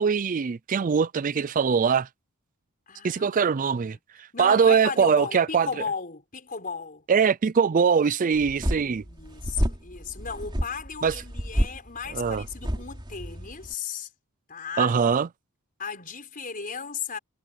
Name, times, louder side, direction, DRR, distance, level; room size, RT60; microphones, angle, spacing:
voice 1, 0.0-2.1 3.0-5.7 7.1-9.0 11.0-11.1 12.1-12.4 14.8-15.3, right 6 dB, 35° right, 0.4 m, -22 dB
voice 2, 2.9-3.5 3.9-4.0 4.3-7.0 8.8-14.1 14.5-14.9 15.8-17.2, left 5 dB, 40° left, 5.1 m, -35 dB
sound 1, 8.3-13.7, equal, 20° right, 3.5 m, -30 dB
head